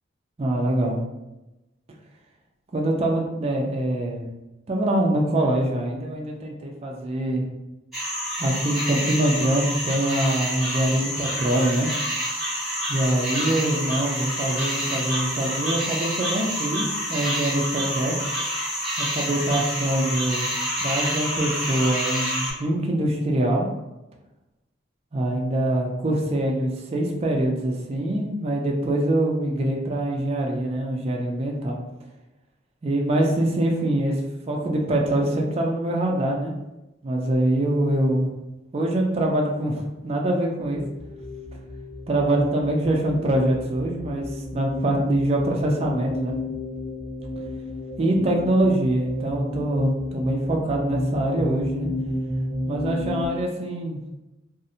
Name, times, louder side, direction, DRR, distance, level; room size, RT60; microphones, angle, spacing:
voice 1, 0.4-1.0 2.7-4.2 4.7-7.4 8.4-11.9 12.9-18.2 19.0-20.5 20.8-23.7 25.1-31.8 32.8-34.2 34.5-36.5 37.0-38.3 38.7-40.8 42.1-46.4 48.0-51.9 52.6-54.0, right 1 dB, 30° right, 0 dB, 0.3 m, -24 dB
sound 1, 7.9-22.5, equal, ahead, 0.9 m, -28 dB
sound 2, 40.6-53.3, left 1 dB, 40° left, 0.9 m, -33 dB
2.5 x 2.0 x 2.6 m, 0.99 s
head